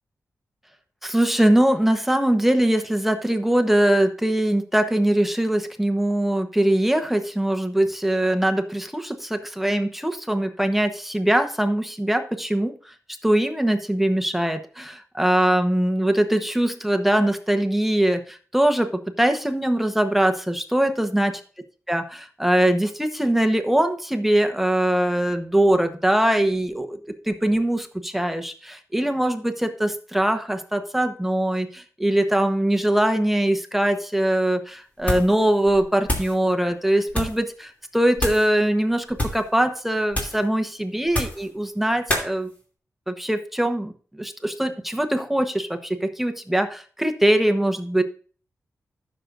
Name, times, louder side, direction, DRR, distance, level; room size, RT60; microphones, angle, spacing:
voice 1, 1.0-12.9 13.2-21.4 21.9-27.0 27.3-42.5 43.1-48.0, right 1 dB, 5° right, 6 dB, 1.0 m, -22 dB
sound 1, 35.0-35.4 35.7-36.4 37.1-37.4 38.2-38.5 39.1-39.5 40.1-40.5 41.1-41.5 42.1-42.3, left 1 dB, 25° left, 2.7 m, -27 dB
15.0 x 6.6 x 2.6 m, 0.40 s
wide cardioid pair, 105°, 6 cm